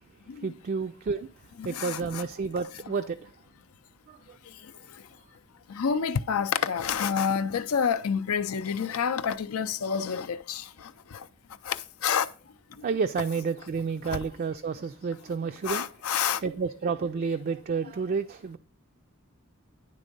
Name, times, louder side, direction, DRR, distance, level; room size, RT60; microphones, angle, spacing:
voice 1, 0.4-1.3 1.6-3.2 4.1-4.2 12.8-15.8 16.4-18.6, right 5 dB, 40° right, 0.3 m, -30 dB
voice 2, 1.6-2.2 5.7-11.2 11.7-11.8 12.0-12.3 14.1-14.2 15.6-16.4, left 7 dB, 85° left, 0.5 m, -28 dB
10.0 x 3.5 x 5.2 m
head